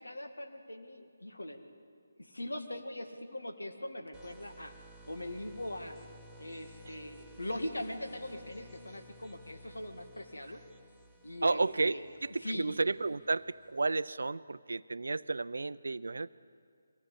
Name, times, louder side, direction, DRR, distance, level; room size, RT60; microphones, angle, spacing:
voice 1, 0.0-1.6 2.2-4.7 5.1-6.0 6.4-10.6 11.2-12.0 12.4-12.7, left 1 dB, 80° left, 6 dB, 2.1 m, -41 dB
sound 1, 4.1-13.8, right 1 dB, 5° left, 1.4 m, -56 dB
voice 2, 11.4-16.3, right 3 dB, 70° right, 17 dB, 0.5 m, -32 dB
23.5 x 17.5 x 8.5 m, 2.2 s
figure-of-eight pair, 150°, 0 cm